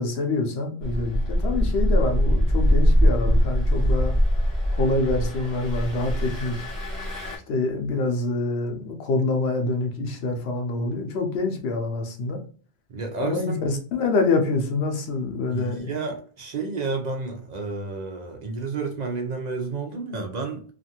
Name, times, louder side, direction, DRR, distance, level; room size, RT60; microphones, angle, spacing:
voice 1, 0.0-4.1 4.7-6.6 7.5-12.4 13.2-15.9, left 3 dB, 85° left, 0.9 m, -26 dB
Engine, 0.8-7.4, equal, 20° left, 1.2 m, -22 dB
voice 2, 12.9-13.6 15.5-20.6, right 4 dB, 55° right, 0.6 m, -31 dB
2.5 x 2.4 x 2.8 m
omnidirectional pair, 1.0 m